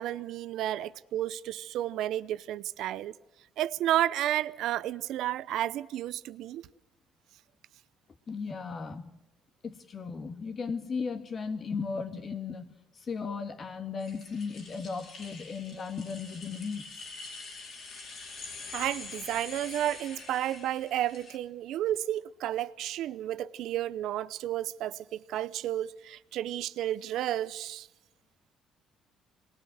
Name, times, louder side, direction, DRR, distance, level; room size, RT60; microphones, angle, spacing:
voice 1, 0.0-3.1 3.6-6.6 18.7-27.9, right 12 dB, 75° right, 0.7 m, -32 dB
voice 2, 8.3-9.1 9.6-16.9, left 5 dB, 45° left, 2.1 m, -36 dB
sound 1, 14.0-21.4, left 4 dB, 60° left, 4.4 m, -45 dB
26.5 x 20.0 x 6.4 m
supercardioid pair, 65°, 0 cm